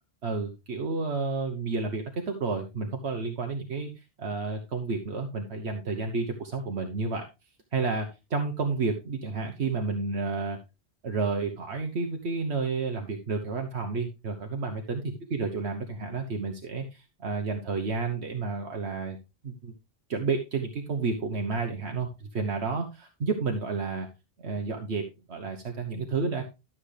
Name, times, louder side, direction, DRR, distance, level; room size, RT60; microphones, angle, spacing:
voice 1, 0.2-7.3 7.7-10.6 11.0-15.0 15.3-19.2 19.4-19.7 20.1-24.1 24.4-26.4, right 4 dB, 75° right, 3 dB, 1.3 m, -31 dB
12.5 x 7.3 x 3.3 m, 0.26 s
omnidirectional pair, 1.1 m